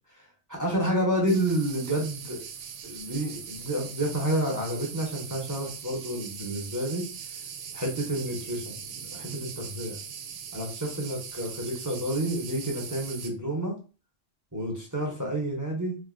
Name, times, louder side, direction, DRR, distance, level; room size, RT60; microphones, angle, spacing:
voice 1, 0.1-2.4 2.8-7.1 7.7-8.8 9.1-10.0 10.5-13.7 14.5-16.0, right 1 dB, 20° right, -2 dB, 0.7 m, -29 dB
sound 1, 1.3-13.3, right 7 dB, 85° right, 0.9 m, -41 dB
3.2 x 2.6 x 2.5 m, 0.34 s
omnidirectional pair, 1.2 m